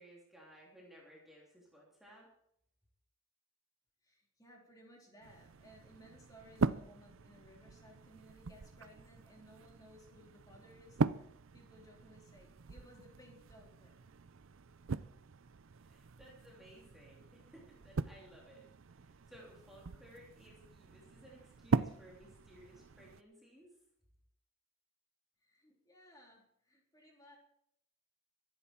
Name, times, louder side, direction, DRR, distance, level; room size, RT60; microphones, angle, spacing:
voice 1, 0.0-2.3 15.8-23.7, equal, ahead, -5 dB, 3.2 m, -59 dB
voice 2, 4.0-11.3 11.5-14.1 25.4-27.4, equal, 15° left, -2 dB, 3.8 m, -60 dB
sound 1, 5.2-23.2, right 4 dB, 65° right, 0.5 m, -41 dB
23.5 x 11.0 x 4.6 m, 0.73 s
head